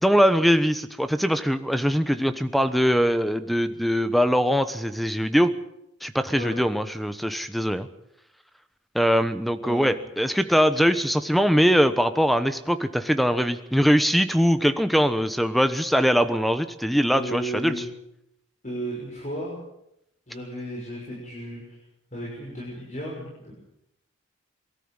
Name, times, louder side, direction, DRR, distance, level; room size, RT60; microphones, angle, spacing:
voice 1, 0.0-5.5 6.0-7.9 8.9-17.7, equal, ahead, 11 dB, 1.0 m, -22 dB
voice 2, 9.6-10.1 17.1-17.9 18.6-19.6 20.3-21.8 22.1-23.5, right 1 dB, 40° left, -4 dB, 6.4 m, -34 dB
23.0 x 13.5 x 8.9 m, 0.81 s
head